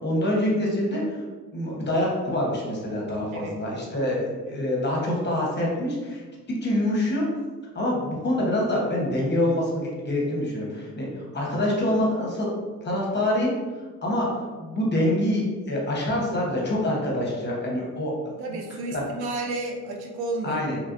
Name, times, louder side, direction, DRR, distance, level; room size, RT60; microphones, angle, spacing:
voice 1, 0.0-1.2 1.5-6.2 6.5-7.2 7.7-12.5 12.8-13.5 14.0-18.3 20.4-20.8, left 1 dB, 30° left, -3 dB, 0.9 m, -26 dB
voice 2, 18.4-20.6, right 2 dB, 75° right, 2 dB, 0.6 m, -32 dB
3.0 x 2.5 x 2.5 m, 1.4 s
cardioid pair, 90°, 38 cm